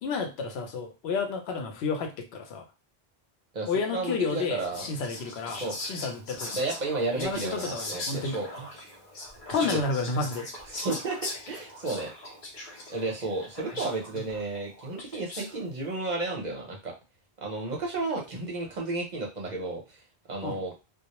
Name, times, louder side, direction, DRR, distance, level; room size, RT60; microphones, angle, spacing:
voice 1, 0.0-2.7 3.6-6.6 7.2-8.4 9.5-10.5 14.1-14.3 20.4-20.6, left 4 dB, 85° left, 5 dB, 0.8 m, -31 dB
voice 2, 3.5-4.9 5.6-5.8 6.5-8.5 9.6-9.8 10.7-12.1 12.9-16.9 17.4-20.0 20.3-20.7, right 3 dB, 50° right, -1 dB, 0.7 m, -32 dB
Whispering, 4.3-15.6, left 2 dB, 55° left, 0.8 m, -40 dB
2.1 x 2.0 x 2.8 m, 0.28 s
omnidirectional pair, 1.0 m